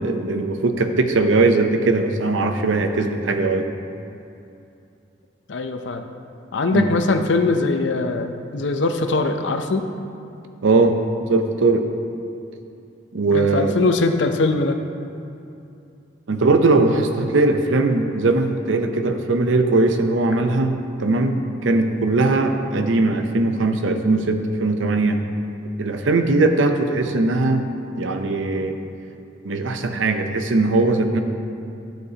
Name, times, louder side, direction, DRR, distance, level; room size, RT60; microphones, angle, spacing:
voice 1, 0.0-3.7 6.7-6.9 10.6-11.8 13.1-13.9 16.3-25.2 25.8-27.6 28.0-28.7 29.4-31.2, right 3 dB, 85° right, 6 dB, 0.6 m, -20 dB
voice 2, 5.5-6.0 6.5-9.8 13.3-14.8, left 3 dB, 70° left, 6 dB, 0.6 m, -21 dB
12.0 x 8.1 x 2.9 m, 2.6 s
head